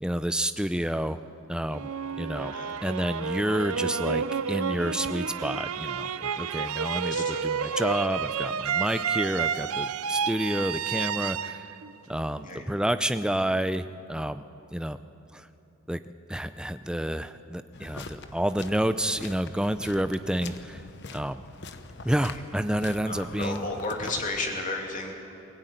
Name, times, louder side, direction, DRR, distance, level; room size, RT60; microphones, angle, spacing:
voice 1, 0.0-1.2 1.5-1.9 2.2-2.5 2.8-11.6 12.1-13.8 14.1-14.4 14.7-15.0 15.3-15.5 15.9-16.0 16.3-20.8 21.1-21.4 22.0-23.7, right 1 dB, 5° right, 11 dB, 0.5 m, -29 dB
sound 1, 1.7-12.7, right 6 dB, 80° right, 0.6 m, -30 dB
voice 2, 2.5-2.8 7.1-7.9 12.4-12.7 22.0-22.3 23.1-25.1, left 2 dB, 35° left, 1 dB, 2.8 m, -34 dB
sound 2, 17.7-24.5, left 3 dB, 50° left, 1.0 m, -43 dB
22.5 x 17.0 x 9.3 m, 2.8 s
head